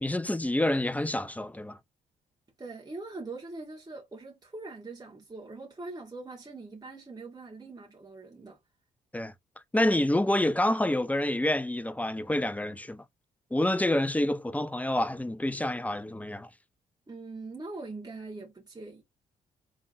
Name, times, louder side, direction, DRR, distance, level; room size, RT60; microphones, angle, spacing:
voice 1, 0.0-1.8 9.1-9.3 9.7-13.0 13.5-16.5, left 1 dB, 5° left, 0.5 m, -27 dB
voice 2, 2.6-8.6 17.1-19.0, right 3 dB, 20° right, 1.5 m, -42 dB
4.7 x 3.4 x 2.6 m
hypercardioid pair, 40°, 20 cm